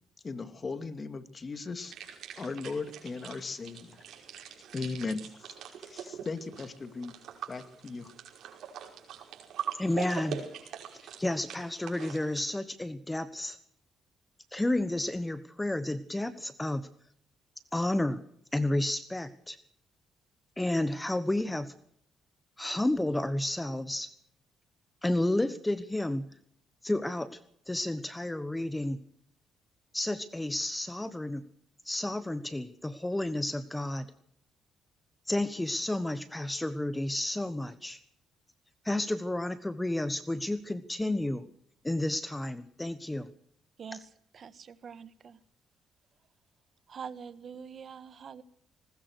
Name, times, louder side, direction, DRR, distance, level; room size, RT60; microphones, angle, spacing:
voice 1, 0.2-1.9 2.4-4.0 4.7-5.5 5.8-7.2 7.5-8.1, left 4 dB, 35° left, 10 dB, 2.2 m, -37 dB
sound 1, 1.8-12.4, right 9 dB, 75° right, 5.3 m, -43 dB
voice 2, 9.7-10.5 10.9-13.6 14.5-16.9 17.7-18.2 18.5-19.6 20.6-21.7 22.6-24.1 25.0-26.3 26.8-27.4 27.7-29.0 29.9-31.4 31.8-34.1 35.3-38.0 38.8-41.5 41.8-43.3 43.9-44.0, left 1 dB, 10° left, 12 dB, 1.3 m, -31 dB
voice 3, 43.8-44.1 44.3-45.4 46.9-48.4, right 6 dB, 50° right, 14 dB, 1.4 m, -44 dB
20.5 x 20.0 x 6.4 m, 0.68 s
cardioid pair, 90°, 0 cm